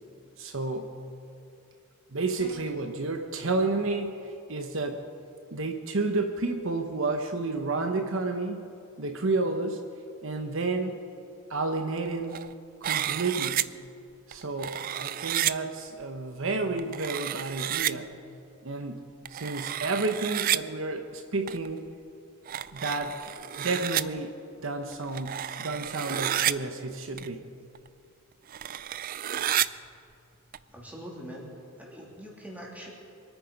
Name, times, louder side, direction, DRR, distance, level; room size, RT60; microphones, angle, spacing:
voice 1, 0.4-0.9 2.1-5.0 5.5-8.7 9.0-9.8 10.2-11.0 11.5-12.4 12.8-13.6 14.3-18.1 18.6-21.8 22.7-24.3 24.6-27.4, right 3 dB, 65° right, 5 dB, 1.0 m, -31 dB
sound 1, 2.4-2.9, left 1 dB, 35° left, 2.4 m, -47 dB
sound 2, 12.0-12.5 12.8-13.6 14.3-15.5 16.8-17.9 19.2-20.6 21.5-21.7 22.5-24.0 24.9-26.5 27.2-27.3 27.7-27.9 28.5-29.7 30.5-30.6, right 12 dB, 40° right, 0.3 m, -30 dB
voice 2, 30.7-31.5 31.8-32.9, equal, 5° right, -3 dB, 2.7 m, -43 dB
24.5 x 9.3 x 5.3 m, 2.6 s
head